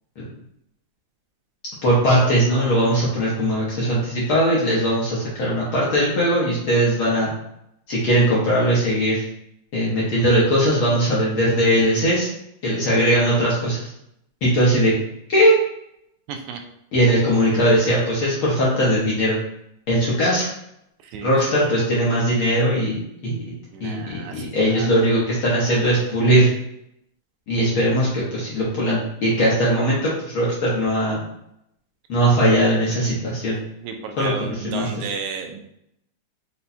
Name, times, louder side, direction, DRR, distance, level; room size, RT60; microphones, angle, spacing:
voice 1, 1.8-7.3 7.9-9.2 9.7-12.3 12.6-13.9 14.4-14.9 15.3-15.6 16.9-19.4 19.9-20.5 21.2-23.5 23.8-26.5 27.5-31.2 32.1-33.6 34.2-35.1, equal, 65° left, -6 dB, 1.4 m, -19 dB
voice 2, 16.3-16.6 21.1-21.3 23.7-24.9 33.8-35.6, right 6 dB, 80° right, 4 dB, 1.9 m, -32 dB
5.3 x 2.3 x 4.1 m, 0.78 s
omnidirectional pair, 3.4 m